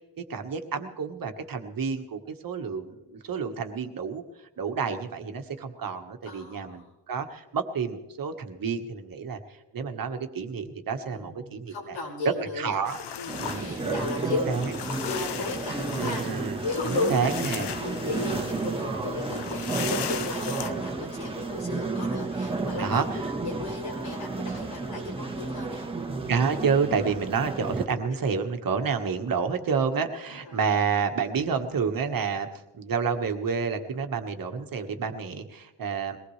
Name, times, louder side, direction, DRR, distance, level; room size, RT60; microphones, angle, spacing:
voice 1, 0.2-4.2 4.6-9.4 9.7-12.0 12.6-13.0 13.4-14.7 16.0-16.6 16.8-17.7 22.8-23.3 26.3-32.5 32.7-36.2, right 5 dB, 50° right, 6 dB, 1.5 m, -29 dB
voice 2, 6.2-6.9 10.9-12.8 13.2-14.5 15.0-17.5 17.8-23.1 23.4-25.9 30.3-30.6, left 3 dB, 90° left, -3 dB, 5.7 m, -35 dB
sound 1, 12.9-20.7, left 8 dB, 65° left, 0.9 m, -37 dB
sound 2, 13.3-27.9, right 3 dB, 10° right, 1.3 m, -32 dB
22.5 x 19.0 x 3.3 m, 1.0 s
wide cardioid pair, 150°, 44 cm